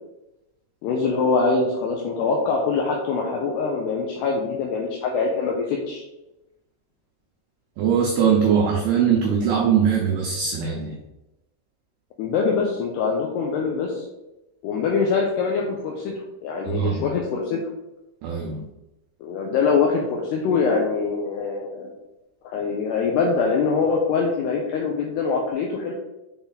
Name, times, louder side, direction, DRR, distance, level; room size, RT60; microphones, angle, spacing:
voice 1, 0.8-6.0 12.2-14.1 14.6-17.6 19.2-21.9 22.4-25.9, left 4 dB, 85° left, 0 dB, 2.4 m, -23 dB
voice 2, 7.8-11.0 16.6-17.0 18.2-18.7, right 7 dB, 85° right, -1 dB, 2.3 m, -21 dB
7.2 x 4.1 x 4.0 m, 0.97 s
omnidirectional pair, 5.7 m